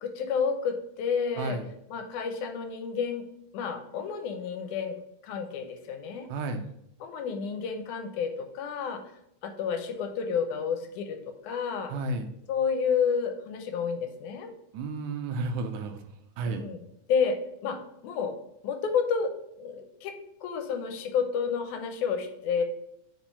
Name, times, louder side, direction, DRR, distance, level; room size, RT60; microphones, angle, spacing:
voice 1, 0.0-1.6 1.9-3.2 3.5-5.0 5.2-6.3 7.0-9.0 9.4-11.2 11.4-11.9 12.5-14.5 16.5-16.8 17.1-17.4 17.6-17.8 18.0-18.4 18.6-20.1 20.4-22.6, left 6 dB, 80° left, 6 dB, 2.2 m, -30 dB
voice 2, 1.3-1.7 6.3-6.6 11.9-12.3 14.7-16.0 16.4-16.6, right 3 dB, 80° right, 7 dB, 2.0 m, -32 dB
4.9 x 4.6 x 5.5 m, 0.76 s
omnidirectional pair, 3.6 m